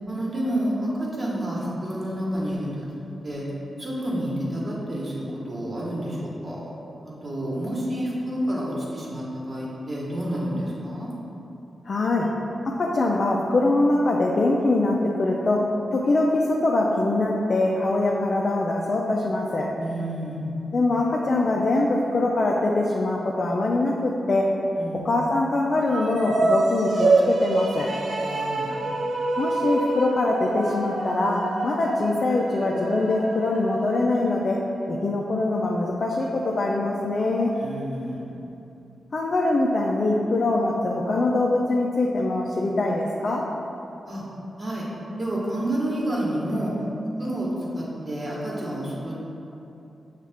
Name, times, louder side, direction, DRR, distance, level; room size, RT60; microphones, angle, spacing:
voice 1, 0.1-2.8 3.2-3.4 3.8-6.7 7.0-11.1 19.7-20.5 24.7-25.1 28.2-28.7 37.5-38.3 44.0-44.2 44.6-44.9 45.2-46.7 47.2-47.5 47.7-49.1, right 1 dB, 40° right, -5 dB, 1.2 m, -29 dB
voice 2, 11.9-12.3 12.6-15.6 15.9-19.7 20.7-24.4 25.0-27.9 29.4-34.6 34.9-37.5 39.1-43.4, left 2 dB, 55° left, -2 dB, 0.4 m, -23 dB
sound 1, 25.8-34.3, right 2 dB, 70° right, 0.4 m, -26 dB
6.2 x 2.4 x 3.4 m, 2.9 s
cardioid pair, 55°, 0 cm